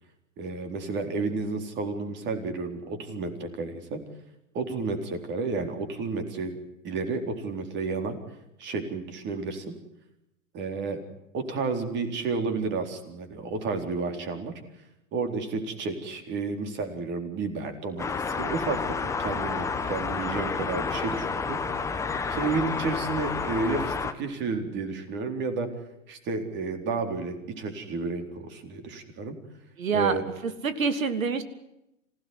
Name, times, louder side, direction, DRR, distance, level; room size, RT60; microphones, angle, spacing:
voice 1, 0.4-4.0 4.5-6.6 6.8-8.2 8.6-9.6 10.5-11.0 11.3-14.5 15.1-21.6 22.3-25.7 26.1-29.4 29.9-30.2, right 4 dB, 25° right, 7 dB, 4.1 m, -31 dB
sound 1, 18.0-24.1, left 5 dB, 5° left, 1.2 m, -30 dB
voice 2, 29.8-30.1 30.4-31.4, right 5 dB, 80° right, 11 dB, 2.9 m, -26 dB
26.5 x 17.0 x 9.6 m, 0.85 s
hypercardioid pair, 135°, 40 cm